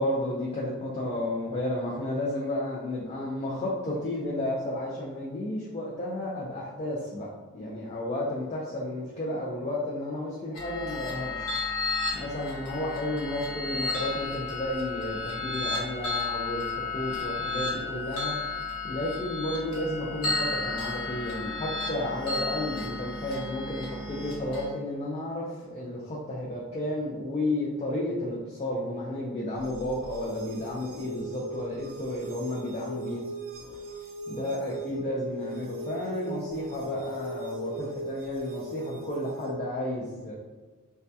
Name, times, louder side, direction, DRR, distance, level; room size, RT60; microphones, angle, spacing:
voice 1, 0.0-7.3 7.5-11.7 12.1-18.4 18.8-33.2 34.3-40.3, left 1 dB, 25° left, -6 dB, 0.3 m, -32 dB
sound 1, 10.5-24.7, left 3 dB, 75° left, 0.8 m, -33 dB
sound 2, 29.6-39.6, right 1 dB, 60° right, 0.4 m, -39 dB
2.2 x 2.1 x 2.6 m, 1.2 s
head